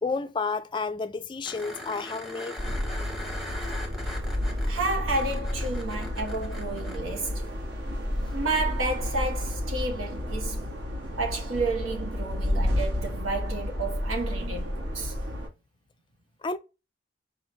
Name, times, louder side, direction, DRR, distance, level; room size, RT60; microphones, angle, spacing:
voice 1, 0.0-2.6 16.4-16.6, left 4 dB, 25° left, 0.3 m, -31 dB
sound 1, 1.4-7.0 9.7-9.8, left 1 dB, ahead, 0.8 m, -40 dB
sound 2, 2.6-15.5, left 1 dB, 60° right, 1.3 m, -31 dB
voice 2, 4.7-7.4 8.3-10.6 11.2-15.1, right 3 dB, 85° right, 1.1 m, -31 dB
4.7 x 3.0 x 3.1 m
head